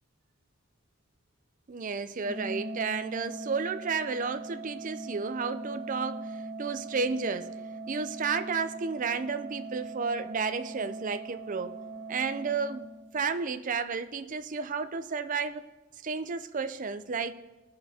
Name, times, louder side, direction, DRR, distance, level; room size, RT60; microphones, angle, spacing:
voice 1, 1.7-7.5 7.9-11.8 12.1-15.7 16.0-17.3, right 5 dB, 35° right, 10 dB, 0.5 m, -32 dB
Organ, 2.2-13.3, right 2 dB, 30° left, 1.3 m, -40 dB
19.5 x 6.6 x 2.8 m, 1.1 s
head